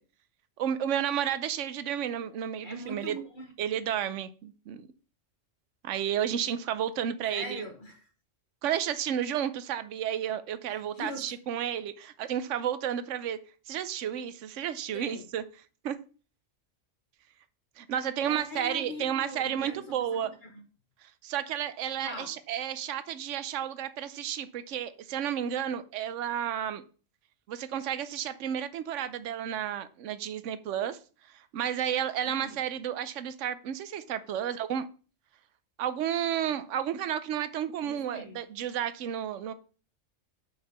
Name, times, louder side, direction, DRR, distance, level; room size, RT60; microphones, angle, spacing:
voice 1, 0.6-3.2 3.6-4.9 5.8-7.7 8.6-13.4 13.7-15.4 15.8-16.0 17.8-20.3 21.2-26.8 27.5-31.0 31.5-34.9 35.8-39.5, right 9 dB, 75° right, 1.0 m, -32 dB
voice 2, 2.6-3.5 7.3-8.1 10.7-11.4 14.9-15.3 18.2-20.6 22.0-22.3 32.2-32.6 37.8-38.4, left 1 dB, 45° left, 1.3 m, -42 dB
5.8 x 5.4 x 6.7 m
omnidirectional pair, 1.3 m